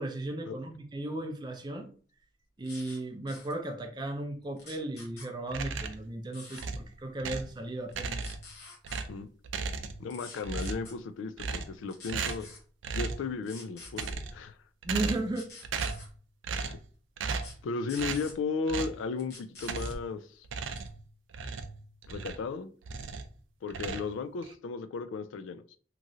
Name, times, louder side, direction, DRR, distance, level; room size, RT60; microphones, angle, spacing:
voice 1, 0.0-1.9 2.6-8.2 14.8-15.5, right 2 dB, 20° right, 0.4 m, -35 dB
sound 1, 2.6-3.0 3.3-3.5 4.6-5.3 6.3-6.6 7.9-9.0 10.1-10.9 11.9-12.6 13.4-14.1 15.3-16.1 17.4-17.5 17.9-18.3 19.2-20.0 20.6-20.9, left 3 dB, 55° left, 1.2 m, -48 dB
sound 2, 5.5-6.1 6.6-7.6 7.9-8.5 8.8-10.1 10.4-10.9 11.4-11.8 12.1-12.5 12.8-13.3 13.8-14.5 14.8-15.4 15.6-16.1 16.4-16.8 17.2-17.6 18.0-18.3 18.7-19.0 19.6-20.1 20.4-22.5 22.8-23.3 23.7-24.5, right 4 dB, 90° right, 0.4 m, -36 dB
voice 2, 10.0-12.5 12.9-14.6 16.5-16.8 17.6-20.5 22.1-22.7 23.6-25.8, left 4 dB, 90° left, 0.3 m, -35 dB
3.0 x 2.4 x 2.6 m
head